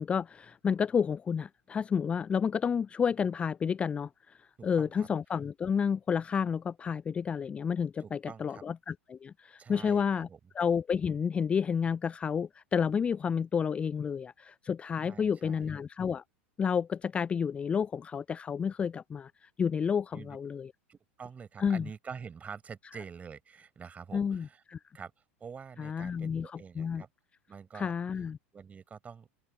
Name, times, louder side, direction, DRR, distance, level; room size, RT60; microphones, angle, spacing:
voice 1, 0.0-10.3 10.6-16.2 16.6-20.7 21.6-21.9 24.1-24.8 25.8-27.0 27.7-28.4, left 7 dB, 15° left, 0.3 m, -30 dB
voice 2, 4.8-5.1 8.0-8.6 9.6-10.4 15.1-15.7 20.1-20.4 20.9-24.6 24.9-25.1 25.4-27.1 27.5-27.9 28.5-29.3, right 6 dB, 20° right, 5.7 m, -46 dB
open air
figure-of-eight pair, 85°, 7 cm